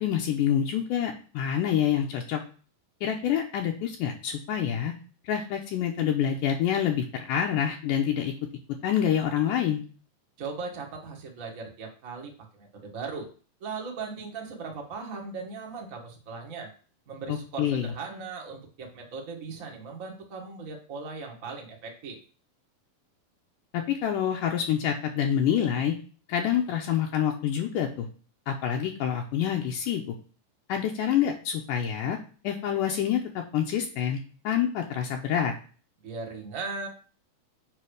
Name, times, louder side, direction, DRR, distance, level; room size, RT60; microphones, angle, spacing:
voice 1, 0.0-2.4 3.0-4.9 5.2-8.3 8.8-9.8 17.3-17.9 23.7-26.0 26.3-28.1 28.5-30.2 30.7-32.2 32.4-35.5, left 9 dB, 80° left, 2 dB, 2.2 m, -27 dB
voice 2, 10.4-13.3 13.6-16.7 17.1-22.2 36.0-36.9, right 4 dB, 50° right, 1 dB, 1.0 m, -38 dB
7.6 x 3.2 x 6.3 m, 0.39 s
omnidirectional pair, 4.0 m